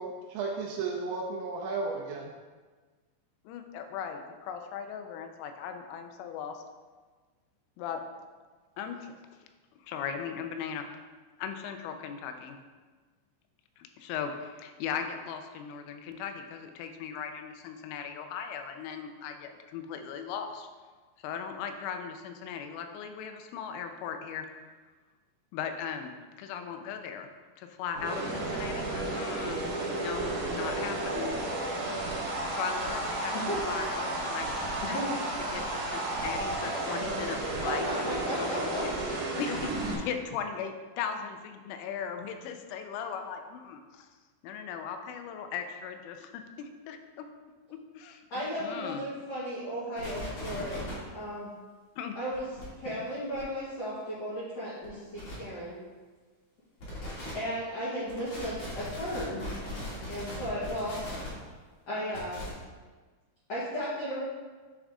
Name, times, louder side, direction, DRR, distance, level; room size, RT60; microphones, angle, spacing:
voice 1, 0.0-2.3, right 4 dB, 80° right, -1 dB, 2.8 m, -34 dB
voice 2, 3.5-6.6 7.8-8.0 8.8-9.1 9.8-10.9 11.4-12.6 13.8-20.7 21.2-24.5 25.5-26.1 26.4-27.3 27.6-29.6 29.9-31.4 32.5-33.3 33.6-34.5 34.9-35.1 35.5-38.6 39.4-44.1 44.4-47.3 47.7-49.0 52.0-52.1, left 7 dB, 85° left, 6 dB, 3.1 m, -38 dB
sound 1, 27.9-39.9, right 2 dB, 65° right, 2.5 m, -33 dB
voice 3, 37.6-38.8 48.3-51.5 52.1-52.5 52.8-55.8 57.3-59.5 60.0-61.0 61.9-62.4 63.5-64.2, equal, 70° left, -11 dB, 1.5 m, -35 dB
sound 2, 50.0-50.9 52.3-52.6 53.3-53.4 54.8-54.9 55.1-55.3 56.8-57.3 58.1-61.3 62.1-62.5, left 1 dB, 45° left, 2.7 m, -39 dB
9.9 x 3.7 x 3.6 m, 1.4 s
omnidirectional pair, 5.5 m